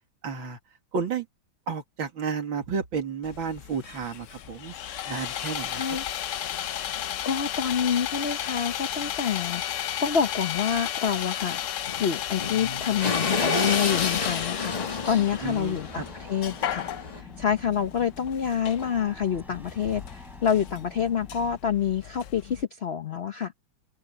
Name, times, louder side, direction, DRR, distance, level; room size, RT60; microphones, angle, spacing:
voice 1, 0.2-0.6 0.9-1.3 1.7-4.7 5.1-6.0 15.4-16.1, right 5 dB, 75° right, 3.1 m, -32 dB
Sawing, 3.2-22.6, left 11 dB, 85° left, 0.6 m, -34 dB
voice 2, 5.7-6.0 6.9-11.6 12.0-14.8 15.1-16.9 17.1-23.5, left 8 dB, 50° left, 0.8 m, -27 dB
sound 1, 6.9-7.0 7.5-7.6 8.3-8.4 8.6-8.7 9.0-9.1 10.8-10.9 11.2-11.3 11.9-17.2, left 3 dB, 25° left, 1.2 m, -31 dB
sound 2, 15.0-21.6, equal, ahead, 3.5 m, -49 dB
open air
omnidirectional pair, 2.2 m